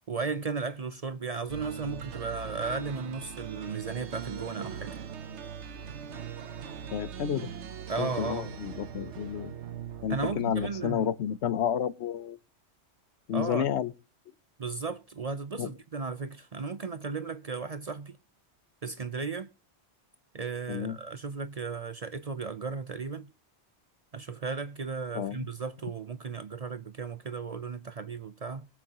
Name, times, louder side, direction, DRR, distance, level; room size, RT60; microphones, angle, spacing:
voice 1, 0.1-5.0 7.9-8.6 10.1-11.1 13.3-13.7 14.6-18.2 18.8-19.5 20.3-23.3 24.1-28.7, right 4 dB, 45° right, 0.6 m, -35 dB
sound 1, 1.5-11.3, right 7 dB, 85° right, 1.2 m, -41 dB
voice 2, 6.9-7.5 8.0-9.5 10.0-12.4 13.3-13.9 15.6-15.7 20.7-21.0 25.1-25.4, left 9 dB, 75° left, 1.0 m, -30 dB
22.5 x 7.9 x 2.9 m
omnidirectional pair, 1.2 m